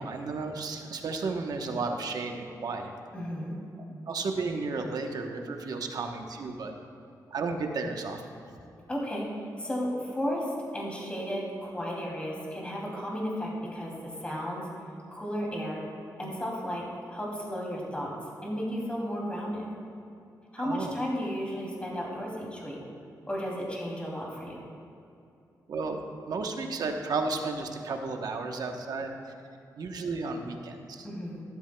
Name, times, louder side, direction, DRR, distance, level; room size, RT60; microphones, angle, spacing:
voice 1, 0.0-2.9 4.1-6.7 7.3-8.2 20.6-20.9 25.7-26.0 26.3-29.3 29.8-31.1, right 3 dB, 70° right, 4 dB, 1.0 m, -33 dB
voice 2, 3.1-3.6 8.9-10.5 10.7-13.9 14.2-14.6 15.1-15.8 16.2-16.8 17.1-18.1 18.4-19.7 20.5-22.8 23.3-24.6 31.0-31.4, equal, 15° left, -3 dB, 2.7 m, -33 dB
14.0 x 12.5 x 2.2 m, 2.6 s
cardioid pair, 95°, 7 cm